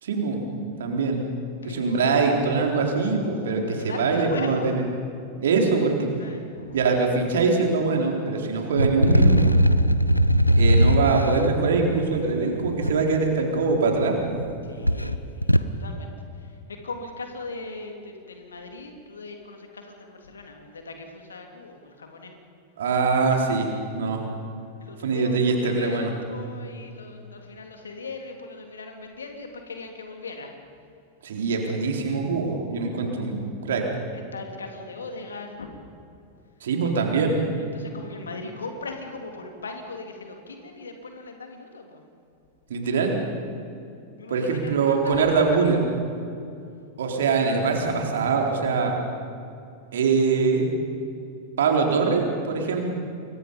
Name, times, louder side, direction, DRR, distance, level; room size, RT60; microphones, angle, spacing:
voice 1, 0.0-0.4 0.8-1.2 1.6-4.8 5.4-5.9 6.7-9.5 10.6-14.4 22.8-23.7 23.9-24.2 25.0-26.1 31.2-33.8 36.6-37.4 42.7-43.2 44.3-45.8 47.0-49.0 49.9-50.7 51.6-52.8, right 4 dB, 60° right, 2 dB, 3.9 m, -23 dB
voice 2, 1.6-2.1 3.7-4.8 6.2-6.8 14.6-16.1 16.4-22.3 24.8-30.5 34.3-35.7 37.6-42.0 44.2-45.7, left 3 dB, 70° left, 4 dB, 3.2 m, -39 dB
sound 1, 8.8-12.9 13.7-14.5 14.8-15.7, equal, 90° left, 0.8 m, -20 dB
28.5 x 23.0 x 5.4 m, 2.5 s
figure-of-eight pair, 90°, 0 cm